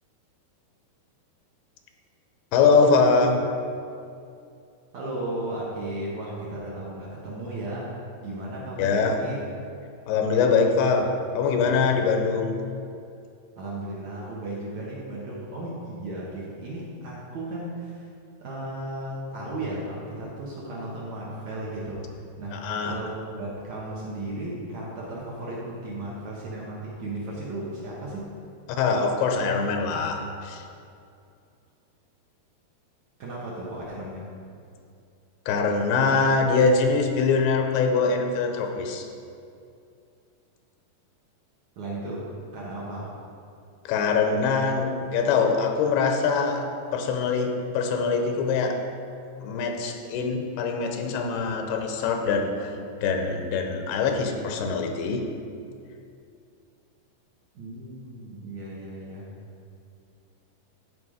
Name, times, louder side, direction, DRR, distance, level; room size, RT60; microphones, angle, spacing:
voice 1, 2.5-3.4 8.8-9.2 10.1-12.5 22.5-23.0 28.8-30.6 35.5-39.1 43.9-48.8 49.4-55.3, left 4 dB, 90° left, 4 dB, 2.8 m, -23 dB
voice 2, 4.9-9.4 13.6-18.1 18.4-28.3 33.2-34.3 41.8-42.3 42.5-43.1 57.6-59.3, right 1 dB, 60° right, -6 dB, 2.0 m, -35 dB
13.5 x 4.8 x 5.0 m, 2.5 s
omnidirectional pair, 4.6 m